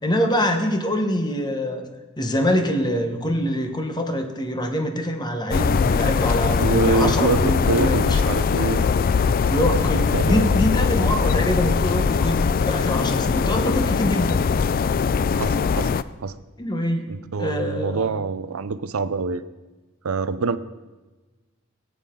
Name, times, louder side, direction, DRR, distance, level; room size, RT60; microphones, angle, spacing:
voice 1, 0.0-1.8 2.2-8.2 9.5-14.5 16.6-17.1 17.4-18.1, equal, 20° left, 5 dB, 1.2 m, -24 dB
sound 1, 5.5-16.0, left 5 dB, 40° left, 0.3 m, -21 dB
voice 2, 6.6-8.8 10.1-10.5 15.3-15.9 16.2-16.4 17.1-19.4 20.0-20.6, right 4 dB, 75° right, 13 dB, 0.6 m, -25 dB
18.0 x 9.5 x 3.8 m, 1.2 s
head